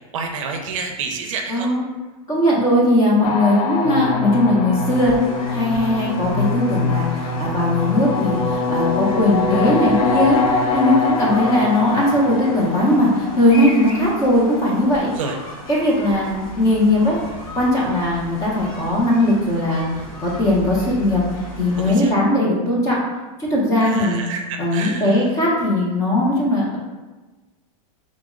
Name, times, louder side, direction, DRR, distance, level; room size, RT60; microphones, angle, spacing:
voice 1, 0.1-1.7 15.1-15.3 21.7-22.1 23.8-25.2, right 5 dB, 60° right, 3 dB, 0.5 m, -29 dB
voice 2, 1.5-1.8 2.3-5.2 5.5-15.1 15.7-17.2 17.5-19.8 20.2-21.2 21.6-23.0 23.4-24.2 24.6-26.8, left 1 dB, 15° left, -4 dB, 0.6 m, -18 dB
sound 1, 3.2-14.4, left 4 dB, 80° left, 0.5 m, -24 dB
sound 2, 4.8-21.9, equal, 65° left, 1.3 m, -37 dB
3.8 x 2.0 x 3.6 m, 1.2 s
supercardioid pair, 170°, 19 cm